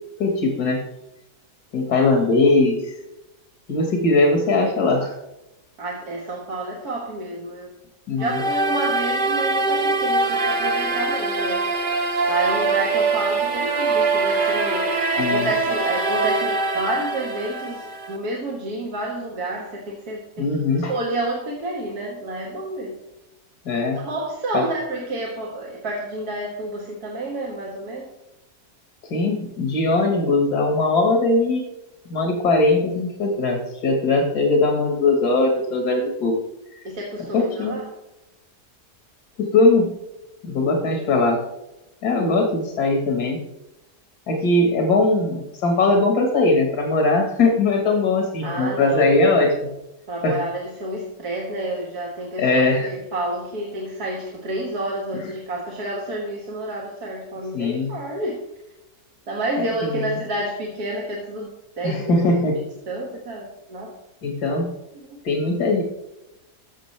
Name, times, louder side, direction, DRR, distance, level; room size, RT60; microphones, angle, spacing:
voice 1, 0.2-0.8 1.7-2.9 3.7-5.1 8.1-8.4 15.2-15.5 20.4-20.9 23.7-24.0 24.5-24.6 29.1-31.6 32.1-36.4 36.7-36.8 37.3-37.8 39.4-39.9 40.4-41.4 42.0-43.4 44.3-49.5 50.2-50.4 52.4-52.9 57.5-57.9 59.8-60.1 61.8-62.6 64.2-64.7 65.2-65.8, left 2 dB, 75° left, 2 dB, 2.0 m, -20 dB
voice 2, 5.8-7.7 8.2-11.7 12.3-20.5 20.9-22.9 23.9-28.1 36.8-37.8 48.4-49.2 50.1-58.4 59.3-61.5 61.8-62.3 62.9-63.9, right 1 dB, 70° right, -1 dB, 1.9 m, -29 dB
sound 1, 8.2-18.2, right 3 dB, 35° right, 1.0 m, -23 dB
14.0 x 6.4 x 3.3 m, 0.95 s
omnidirectional pair, 1.7 m